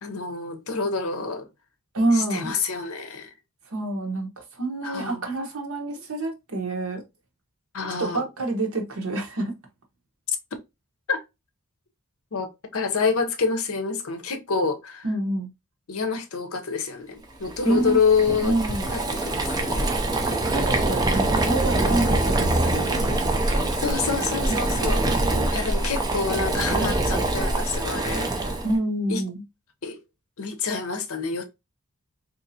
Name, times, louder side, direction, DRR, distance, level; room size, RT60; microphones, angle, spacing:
voice 1, 0.0-1.5 2.1-3.3 4.8-5.2 7.7-8.2 11.1-11.2 12.3-15.1 15.9-18.5 18.9-19.9 23.8-25.2 25.5-28.5 29.1-29.2 29.8-30.0 30.4-31.4, left 5 dB, 70° left, 0.7 m, -27 dB
voice 2, 1.9-2.5 3.7-7.0 8.0-9.5 15.0-15.5 17.6-18.0 18.4-19.0 20.4-22.4 22.6-23.2 28.6-29.4, right 2 dB, 70° right, 1.0 m, -27 dB
Boiling, 17.5-28.8, right 2 dB, 15° right, 0.5 m, -24 dB
3.8 x 2.8 x 2.7 m
head